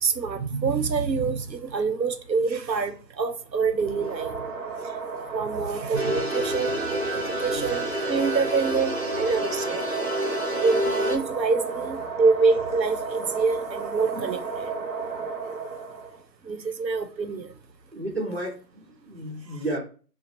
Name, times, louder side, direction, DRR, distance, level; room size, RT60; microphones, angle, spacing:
voice 1, 0.0-4.4 5.3-9.8 10.6-14.7 16.5-17.5, right 4 dB, 85° right, 0.8 m, -26 dB
sound 1, 3.8-16.2, right 5 dB, 55° right, 0.9 m, -34 dB
sound 2, 5.9-11.2, equal, 45° left, 0.4 m, -28 dB
voice 2, 17.9-19.8, right 1 dB, 40° right, 1.1 m, -32 dB
2.7 x 2.1 x 2.8 m
figure-of-eight pair, 170°, 50 cm